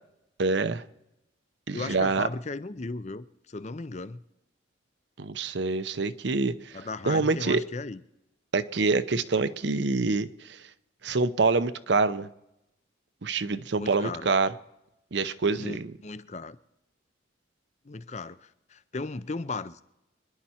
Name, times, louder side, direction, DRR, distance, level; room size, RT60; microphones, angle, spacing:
voice 1, 0.4-0.8 1.7-2.3 5.2-6.7 7.1-7.6 8.5-10.6 11.0-12.3 13.2-14.5 15.1-15.9, right 3 dB, 65° right, 0.7 m, -26 dB
voice 2, 1.7-4.2 6.7-8.0 13.7-14.3 15.5-16.6 17.8-19.8, left 3 dB, 35° left, 0.5 m, -36 dB
25.5 x 11.0 x 4.3 m
head